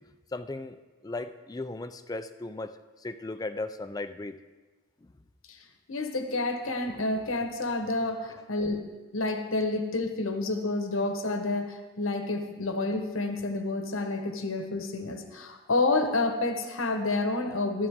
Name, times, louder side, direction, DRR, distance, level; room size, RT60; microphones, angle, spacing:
voice 1, 0.3-0.8 1.0-4.4, left 2 dB, 20° left, 11 dB, 0.4 m, -36 dB
voice 2, 5.9-8.9 9.1-17.9, left 2 dB, 75° left, 6 dB, 1.2 m, -29 dB
13.0 x 12.5 x 3.7 m, 1.3 s
head